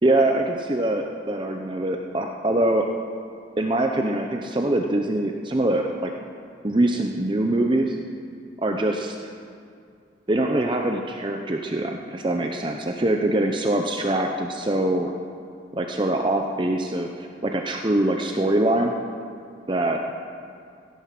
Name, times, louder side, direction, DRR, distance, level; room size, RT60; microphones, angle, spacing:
voice 1, 0.0-2.9 3.6-6.1 6.6-8.0 8.6-9.3 10.3-15.1 15.7-18.9 19.7-20.0, right 1 dB, 25° right, 3 dB, 0.7 m, -23 dB
16.0 x 11.5 x 6.0 m, 2.3 s
head